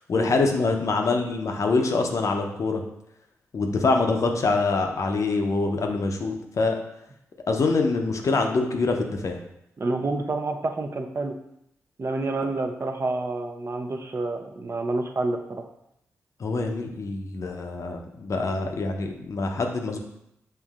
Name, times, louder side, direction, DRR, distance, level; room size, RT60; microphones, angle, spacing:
voice 1, 0.1-2.8 3.5-6.8 7.5-9.4 16.4-20.0, left 3 dB, 60° left, 3 dB, 0.6 m, -25 dB
voice 2, 9.8-11.4 12.0-15.4, right 2 dB, 45° right, 4 dB, 0.5 m, -28 dB
5.5 x 2.6 x 2.4 m, 0.79 s
supercardioid pair, 40°, 6 cm